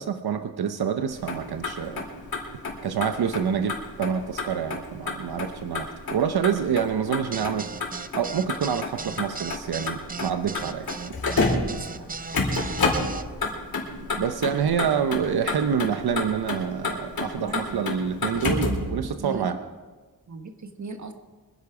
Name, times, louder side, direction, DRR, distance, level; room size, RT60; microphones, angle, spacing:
voice 1, 0.0-2.1 2.8-7.7 8.1-10.9 14.2-19.6, right 7 dB, 85° right, 8 dB, 0.8 m, -27 dB
Motor vehicle (road), 1.1-18.9, left 3 dB, 70° left, 4.2 m, -30 dB
voice 2, 3.2-3.7 11.6-12.1 17.3-17.8 18.1-19.6 20.3-21.1, right 3 dB, 50° right, 6 dB, 1.5 m, -39 dB
sound 1, 7.3-13.2, right 4 dB, 25° right, 0.4 m, -36 dB
25.0 x 10.5 x 4.9 m, 1.4 s
wide cardioid pair, 145°, 37 cm